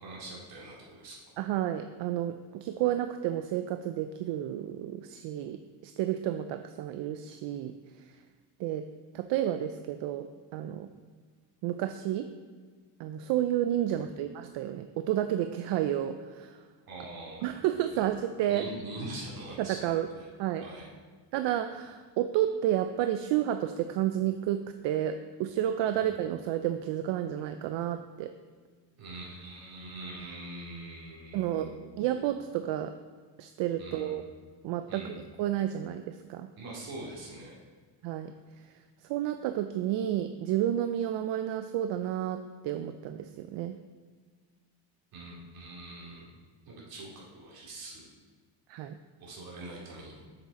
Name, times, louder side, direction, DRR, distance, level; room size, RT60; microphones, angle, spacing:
voice 1, 0.0-1.3 13.9-14.0 16.9-18.0 18.5-20.3 20.6-20.9 25.9-26.1 29.0-32.1 33.8-34.2 34.9-35.2 36.6-37.6 45.1-46.3 46.6-48.1 49.2-50.2, right 2 dB, 55° right, -4 dB, 2.4 m, -43 dB
voice 2, 1.4-7.7 8.6-8.8 9.1-10.9 11.6-12.3 13.0-16.6 17.4-18.7 19.6-20.1 20.4-20.6 21.3-28.3 31.3-32.9 33.4-34.2 34.6-36.5 38.0-38.3 39.1-43.8 48.7-49.0, right 11 dB, 75° right, 8 dB, 0.5 m, -31 dB
7.3 x 6.5 x 4.2 m, 1.5 s
cardioid pair, 175°, 43 cm